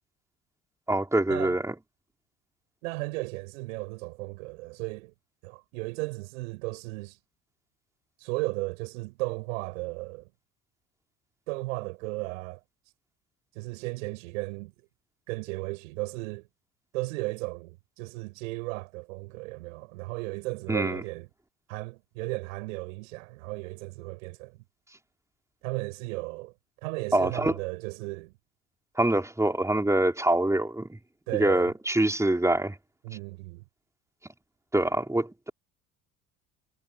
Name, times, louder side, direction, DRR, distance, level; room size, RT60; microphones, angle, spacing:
voice 1, 0.9-1.7 20.7-21.0 27.1-27.5 29.0-31.0 31.4-32.7 34.7-35.5, right 1 dB, 5° right, 4.9 m, -25 dB
voice 2, 2.8-5.1 5.4-7.2 8.2-10.3 11.5-12.6 13.5-14.7 15.3-16.5 16.9-21.3 21.7-24.6 25.6-26.5 26.8-28.3 31.3-31.7 33.0-33.6, right 24 dB, 65° right, 6.2 m, -35 dB
figure-of-eight pair, 60°, 42 cm